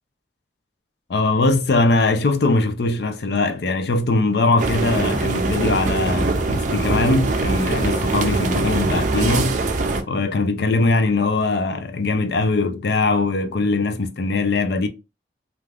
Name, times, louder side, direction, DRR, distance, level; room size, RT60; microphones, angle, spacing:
voice 1, 1.1-9.5 10.1-14.9, left 3 dB, 65° left, 0.5 m, -21 dB
sound 1, 4.6-10.0, right 3 dB, 45° right, 0.4 m, -22 dB
3.3 x 2.5 x 2.3 m
head